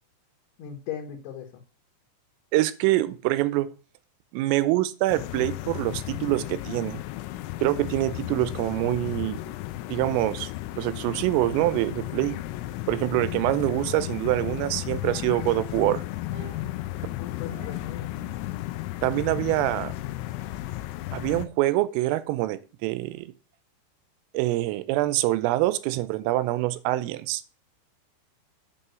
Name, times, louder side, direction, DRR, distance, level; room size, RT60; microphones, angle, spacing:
voice 1, 0.6-1.5 17.1-18.5, left 9 dB, 70° left, 3.4 m, -38 dB
voice 2, 2.5-3.7 4.3-7.0 7.6-9.4 9.9-10.5 10.8-12.4 12.9-16.0 19.0-19.9 21.1-23.3 24.3-27.4, right 17 dB, 90° right, 3.3 m, -25 dB
sound 1, 5.1-21.5, left 16 dB, 90° left, 3.3 m, -34 dB
sound 2, 13.7-14.6 15.0-15.6 16.3-18.0, right 8 dB, 60° right, 3.3 m, -50 dB
7.8 x 5.6 x 6.8 m
omnidirectional pair, 5.8 m